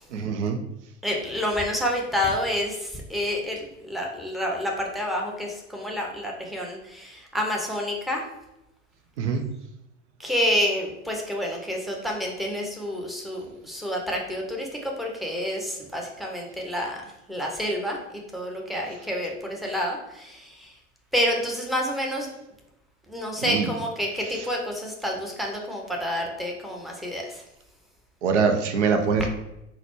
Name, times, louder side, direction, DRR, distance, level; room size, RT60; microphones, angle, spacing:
voice 1, 0.1-0.6 9.2-9.4 23.4-23.7 24.2-24.5 28.2-29.3, right 5 dB, 75° right, 6 dB, 0.5 m, -24 dB
voice 2, 1.0-8.2 10.2-17.0 17.3-18.0 18.3-20.7 21.1-22.3 23.1-27.2, equal, ahead, 0 dB, 0.7 m, -28 dB
3.9 x 2.1 x 3.1 m, 0.86 s
figure-of-eight pair, 70°, 36 cm